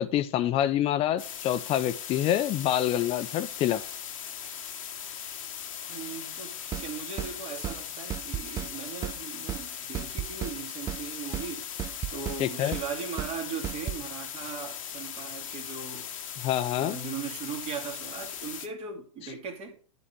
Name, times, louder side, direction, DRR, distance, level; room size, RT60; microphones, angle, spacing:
voice 1, 0.0-3.8 12.4-12.8 16.4-17.0, left 11 dB, 35° left, 0.9 m, -26 dB
sound 1, 1.2-18.7, left 9 dB, 70° left, 1.5 m, -39 dB
voice 2, 5.9-11.7 12.1-16.1 16.8-19.8, right 5 dB, 35° right, 2.4 m, -38 dB
sound 2, 6.7-6.9 7.2-7.3 7.6-7.8 8.1-8.7 9.0-9.2 9.5-9.6 9.9-10.6 10.9-11.0 11.3-11.5 11.8-12.4 12.7-12.9 13.2-13.3 13.6-14.0, right 11 dB, 20° right, 0.4 m, -34 dB
10.0 x 4.1 x 7.1 m
hypercardioid pair, 115°, 17 cm